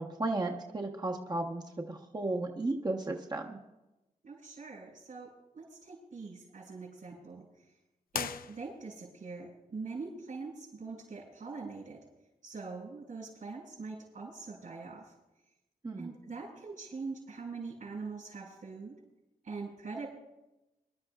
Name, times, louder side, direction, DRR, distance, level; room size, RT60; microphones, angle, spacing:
voice 1, 0.0-3.6 15.8-16.1, right 2 dB, 30° right, 1 dB, 1.2 m, -34 dB
voice 2, 4.2-7.5 8.1-12.0 12.4-15.1 16.0-19.0 19.4-20.1, right 4 dB, 60° right, -8 dB, 5.3 m, -43 dB
sound 1, 8.1-9.1, left 8 dB, 75° left, 0.5 m, -39 dB
25.0 x 12.0 x 2.4 m, 0.97 s
wide cardioid pair, 110°, 15 cm